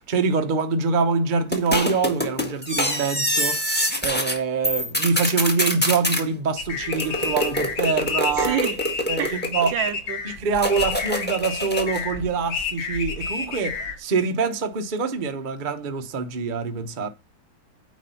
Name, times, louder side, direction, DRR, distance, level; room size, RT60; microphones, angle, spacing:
voice 1, 0.0-8.6 9.1-9.3 9.5-9.7 10.4-17.1, right 4 dB, 45° right, 0.6 m, -25 dB
sound 1, 1.5-4.4 4.6-6.2 6.9-9.9 10.6-12.1, equal, 5° left, 1.1 m, -25 dB
sound 2, 6.6-14.0, left 5 dB, 70° left, 2.3 m, -30 dB
voice 2, 8.4-8.8 9.2-10.3, right 11 dB, 75° right, 1.3 m, -28 dB
9.4 x 3.2 x 5.5 m
omnidirectional pair, 2.2 m